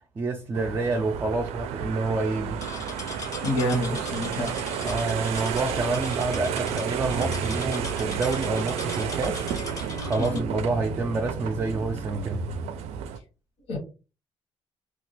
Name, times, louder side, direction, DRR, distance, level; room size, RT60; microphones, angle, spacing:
voice 1, 0.2-2.6 4.8-12.4, right 3 dB, 20° right, 0.3 m, -28 dB
sound 1, 0.5-13.2, right 7 dB, 90° right, 0.4 m, -31 dB
sound 2, 2.6-10.4, left 4 dB, 35° left, 0.6 m, -40 dB
voice 2, 3.4-4.5 10.2-10.4 13.7-13.8, equal, 75° left, 1.0 m, -27 dB
2.3 x 2.2 x 3.8 m
cardioid pair, 170°, 10 cm